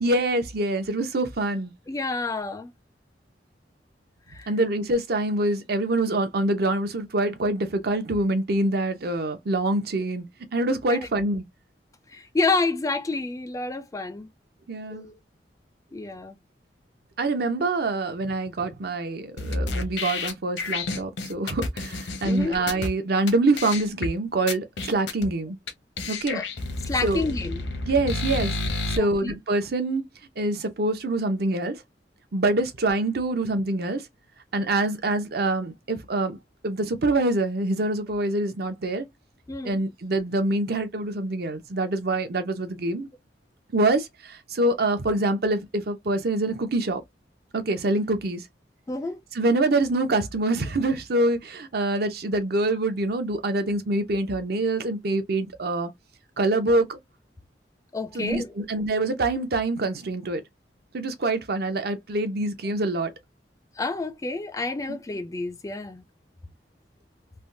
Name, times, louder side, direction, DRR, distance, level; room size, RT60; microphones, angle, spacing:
voice 1, 0.0-1.7 4.5-10.2 10.5-11.4 14.7-15.1 17.2-25.6 26.1-26.4 27.0-27.3 27.9-28.5 28.9-30.1 30.4-31.8 32.3-34.1 34.5-36.4 36.6-39.1 39.6-43.1 43.7-47.0 47.5-48.4 49.3-55.9 56.4-57.0 58.1-60.4 60.9-63.1 64.9-65.0, right 2 dB, 60° right, 0.7 m, -25 dB
voice 2, 1.9-2.7 4.3-4.5 10.9-11.1 12.1-14.3 14.9-15.2 15.9-16.4 22.2-22.6 26.3-26.4 26.9-27.6 29.0-29.3 39.5-39.8 48.9-49.2 57.9-58.5 63.8-66.0, left 3 dB, 20° left, 0.4 m, -29 dB
sound 1, 19.4-22.9 23.3-23.4 23.6-24.1 24.5-25.3 25.7-25.8 26.0-29.0, left 3 dB, 85° left, 0.8 m, -30 dB
3.4 x 2.1 x 2.6 m
head